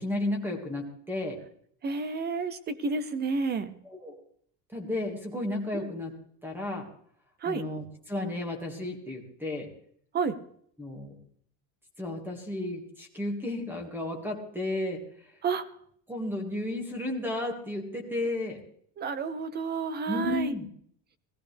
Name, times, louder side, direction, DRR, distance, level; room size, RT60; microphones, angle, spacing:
voice 1, 0.0-1.4 3.8-4.2 4.7-6.1 6.4-6.9 7.5-9.7 10.8-11.2 12.0-15.0 16.1-18.6 20.1-20.7, left 1 dB, 5° right, 3 dB, 1.9 m, -33 dB
voice 2, 1.8-3.7 5.7-5.9 7.4-7.6 10.1-10.4 15.4-15.7 19.0-20.5, right 4 dB, 20° right, 14 dB, 0.5 m, -30 dB
18.0 x 14.5 x 3.3 m, 0.62 s
cardioid pair, 175°, 47 cm